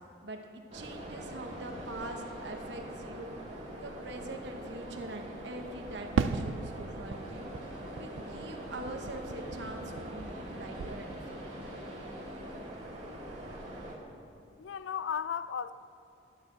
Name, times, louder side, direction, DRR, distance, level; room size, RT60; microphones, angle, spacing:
voice 1, 0.2-3.4 3.8-7.5 7.9-11.4, right 1 dB, 70° right, 4 dB, 1.1 m, -43 dB
sound 1, 0.7-14.0, right 1 dB, 35° right, 1.7 m, -43 dB
Fireworks, 6.2-10.5 10.8-11.6, right 5 dB, 90° right, 0.4 m, -37 dB
sound 2, 7.1-12.6, left 2 dB, 40° left, 1.1 m, -50 dB
voice 2, 14.6-15.7, left 7 dB, 80° left, 14 dB, 0.4 m, -35 dB
11.5 x 8.8 x 4.5 m, 2.7 s
head